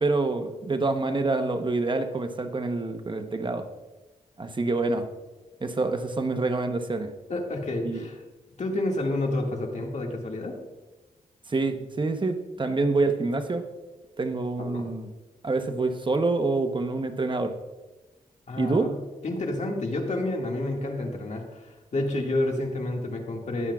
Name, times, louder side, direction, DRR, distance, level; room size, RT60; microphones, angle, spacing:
voice 1, 0.0-3.7 4.4-5.1 5.6-7.1 7.8-8.0 11.5-13.7 14.2-15.1 15.4-17.6 18.6-18.9, right 3 dB, 35° right, 7 dB, 0.9 m, -26 dB
voice 2, 7.3-8.2 8.6-10.6 14.6-14.9 18.5-19.0 19.2-23.7, left 2 dB, 55° left, 1 dB, 2.0 m, -29 dB
20.5 x 7.3 x 2.4 m, 1.2 s
cardioid pair, 75°, 15 cm